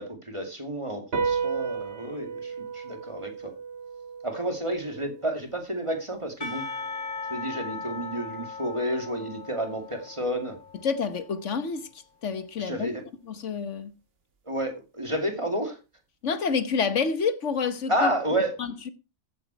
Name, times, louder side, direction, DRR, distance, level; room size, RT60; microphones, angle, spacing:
voice 1, 0.0-3.5 4.2-6.6 7.3-10.6 12.6-13.0 14.5-15.8 17.9-18.5, right 1 dB, 25° right, 2.4 m, -30 dB
sound 1, 1.1-7.8, right 5 dB, 55° right, 1.6 m, -35 dB
Percussion / Church bell, 6.4-11.5, left 4 dB, 45° left, 2.3 m, -38 dB
voice 2, 10.8-11.9 12.2-12.9 13.3-13.9 16.2-18.1 18.6-18.9, left 5 dB, 75° left, 1.5 m, -28 dB
15.0 x 8.1 x 4.5 m
omnidirectional pair, 1.3 m